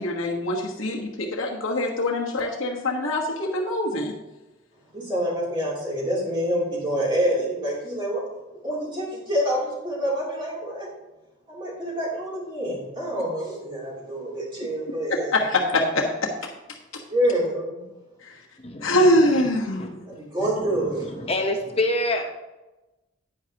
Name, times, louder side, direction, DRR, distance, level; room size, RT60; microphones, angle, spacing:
voice 1, 0.0-4.1 15.3-16.0 18.2-18.4 18.8-20.0, left 1 dB, 85° left, -2 dB, 1.4 m, -23 dB
voice 2, 4.9-8.2 8.6-10.9 11.5-15.3 17.1-17.8 20.0-21.1, equal, 25° right, -5 dB, 3.0 m, -27 dB
voice 3, 18.6-19.1 19.3-19.4 19.8-19.9 20.4-22.2, left 1 dB, 30° left, 4 dB, 0.9 m, -27 dB
10.5 x 9.6 x 2.9 m, 1.0 s
head